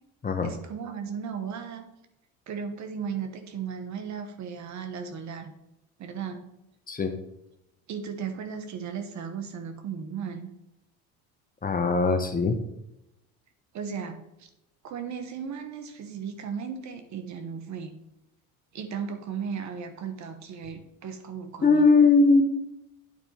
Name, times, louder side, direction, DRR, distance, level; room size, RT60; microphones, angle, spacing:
voice 1, 0.4-1.8 2.5-5.5 6.0-6.4 7.9-10.5 13.7-14.5 14.8-17.9 18.7-21.9, right 6 dB, 50° right, 8 dB, 1.2 m, -36 dB
voice 2, 11.6-12.6 21.6-22.4, left 4 dB, 25° left, 6 dB, 1.0 m, -20 dB
9.1 x 4.3 x 4.2 m, 0.87 s
supercardioid pair, 85°, 36 cm